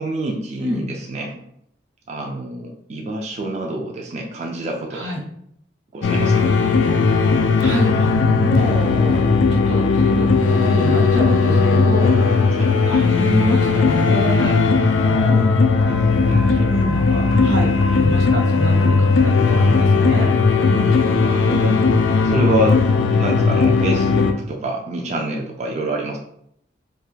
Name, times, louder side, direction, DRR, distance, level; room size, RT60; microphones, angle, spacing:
voice 1, 0.0-1.4 2.1-5.1 5.9-6.5 12.5-12.7 15.3-15.5 16.2-16.5 21.2-21.8 22.2-26.2, right 1 dB, 40° right, 0 dB, 0.3 m, -27 dB
sound 1, 6.0-24.3, left 4 dB, 90° left, 0.3 m, -17 dB
voice 2, 7.2-12.6 12.9-15.3 15.8-20.3 20.6-20.9, equal, 85° right, 0 dB, 0.8 m, -28 dB
2.3 x 2.2 x 3.2 m, 0.72 s
head